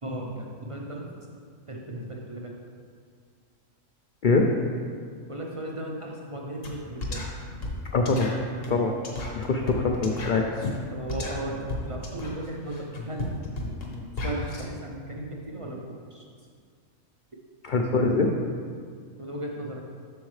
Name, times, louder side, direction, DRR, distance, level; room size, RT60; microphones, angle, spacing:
voice 1, 0.0-1.4 1.7-2.6 5.3-7.3 10.9-13.4 14.2-16.2 19.2-19.8, right 1 dB, 50° right, -1 dB, 0.4 m, -36 dB
sound 1, 6.6-6.8 7.0-14.6, left 2 dB, 50° left, 1.1 m, -34 dB
voice 2, 7.9-8.3 8.7-8.9 9.4-10.7 17.6-18.3, left 3 dB, 70° left, 2 dB, 0.4 m, -23 dB
7.9 x 6.3 x 3.2 m, 2.1 s
omnidirectional pair, 1.4 m